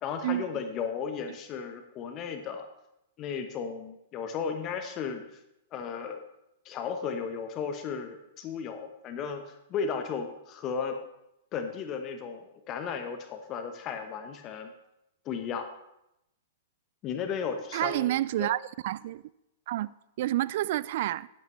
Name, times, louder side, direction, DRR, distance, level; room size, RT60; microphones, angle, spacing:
voice 1, 0.0-2.7 3.2-5.2 5.7-6.2 6.6-11.0 11.5-14.7 15.2-15.7 17.0-18.5, left 6 dB, 35° left, 1.0 m, -35 dB
voice 2, 17.7-18.6 18.8-19.2 19.7-21.3, right 14 dB, 55° right, 0.3 m, -29 dB
11.0 x 10.5 x 3.2 m
hypercardioid pair, 110°, 0 cm